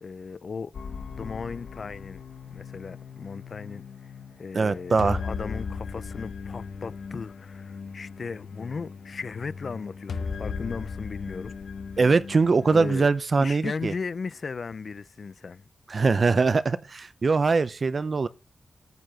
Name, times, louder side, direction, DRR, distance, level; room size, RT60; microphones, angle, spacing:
voice 1, 0.0-2.2 2.5-4.1 4.4-11.5 12.7-13.1 13.4-15.6, left 5 dB, 55° left, 0.4 m, -36 dB
sound 1, 0.7-12.8, left 5 dB, 80° left, 0.8 m, -37 dB
voice 2, 4.5-5.2 12.0-13.9 15.9-18.3, right 4 dB, 45° right, 0.6 m, -22 dB
9.3 x 4.9 x 7.3 m
wide cardioid pair, 145°, 0 cm